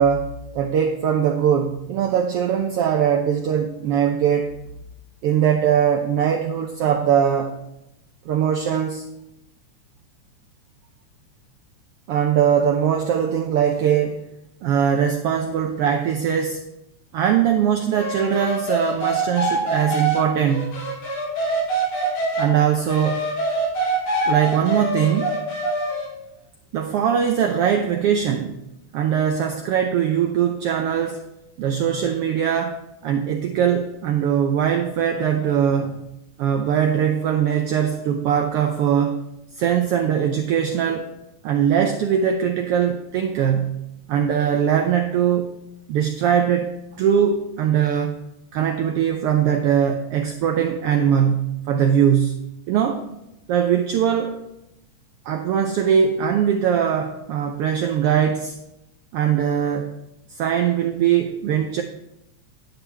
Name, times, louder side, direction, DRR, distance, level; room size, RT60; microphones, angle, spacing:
voice 1, 0.0-4.5 5.2-7.6 8.3-9.0 12.1-14.3 14.6-16.6 17.1-20.8 22.4-23.3 24.3-25.4 26.7-28.6 28.9-31.2 31.6-32.8 33.0-36.0 36.4-39.2 39.6-41.1 41.4-43.8 44.1-45.5 45.9-48.2 48.5-52.4 52.7-53.0 53.5-54.4 55.3-58.5 59.1-59.9 60.3-61.8, right 8 dB, 85° right, 5 dB, 1.3 m, -21 dB
sound 1, 17.9-22.5 22.9-26.1, right 2 dB, 85° left, 4.4 m, -24 dB
9.8 x 9.0 x 3.4 m, 0.87 s
omnidirectional pair, 3.3 m